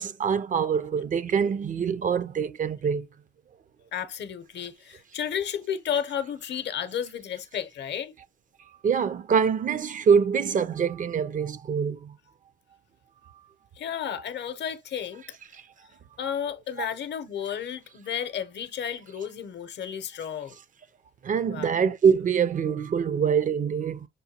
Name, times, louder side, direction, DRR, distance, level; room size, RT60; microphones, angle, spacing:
voice 1, 0.0-3.1 8.8-12.1 21.2-24.1, right 6 dB, 40° right, 0.4 m, -24 dB
voice 2, 3.9-8.1 13.8-15.2 16.2-20.6 21.5-21.8, left 8 dB, 60° left, 0.7 m, -32 dB
6.6 x 2.2 x 2.8 m
cardioid pair, 90°, 20 cm